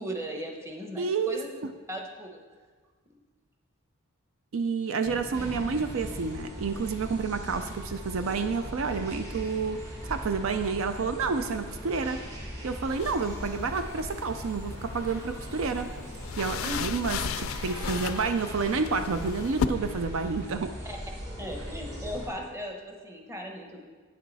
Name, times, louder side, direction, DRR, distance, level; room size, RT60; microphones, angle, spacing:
voice 1, 0.0-1.5 1.9-2.4 16.6-16.9 20.8-21.0 21.4-23.8, equal, 15° right, 1 dB, 1.0 m, -37 dB
voice 2, 1.0-1.4 4.5-12.2 12.6-15.9 16.4-20.7, right 4 dB, 70° right, 8 dB, 0.5 m, -29 dB
sound 1, 5.1-10.3 10.8-11.6, equal, 35° right, 1.3 m, -47 dB
sound 2, 5.3-22.3, equal, 55° right, 2.3 m, -40 dB
sound 3, 12.9-19.6, left 7 dB, 75° left, 0.4 m, -36 dB
9.2 x 7.6 x 4.1 m, 1.5 s
head